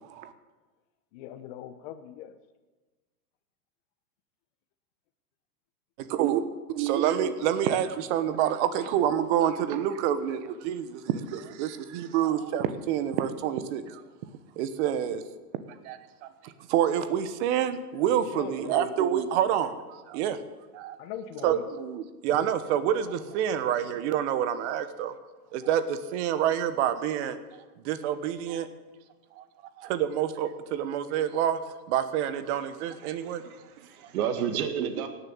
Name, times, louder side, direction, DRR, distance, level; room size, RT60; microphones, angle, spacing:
voice 1, 0.0-0.3 6.0-14.0 14.6-15.2 15.8-20.4 20.7-21.0 21.4-25.1 25.5-27.4 27.8-28.7 29.4-29.5 29.8-31.6 31.9-33.4 34.8-34.9, right 10 dB, 45° right, 11 dB, 1.3 m, -28 dB
voice 2, 1.1-2.3 18.3-18.9 21.0-21.7, left 10 dB, 40° left, 9 dB, 1.0 m, -40 dB
voice 3, 33.1-35.1, right 8 dB, 60° right, 6 dB, 1.9 m, -31 dB
18.0 x 7.1 x 8.7 m, 1.3 s
hypercardioid pair, 135°, 48 cm